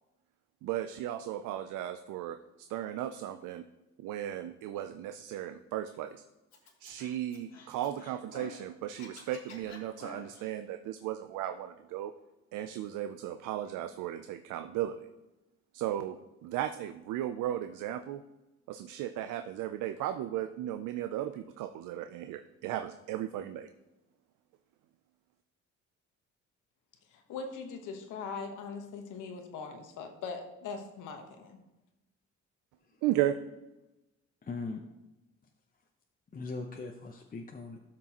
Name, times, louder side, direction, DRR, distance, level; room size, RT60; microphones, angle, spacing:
voice 1, 0.6-3.6 4.0-6.2 6.8-12.1 12.5-15.1 15.7-18.2 18.7-23.7 33.0-33.4, right 12 dB, 90° right, 9 dB, 0.5 m, -35 dB
Scratching (performance technique), 6.5-8.6 8.9-10.5, left 4 dB, 60° left, 1.7 m, -50 dB
voice 2, 27.1-31.6, left 5 dB, 90° left, 4 dB, 1.2 m, -41 dB
voice 3, 34.4-34.9 36.3-37.8, left 3 dB, 30° left, 3 dB, 0.7 m, -40 dB
12.5 x 6.1 x 2.9 m, 1.0 s
cardioid pair, 90°, 30 cm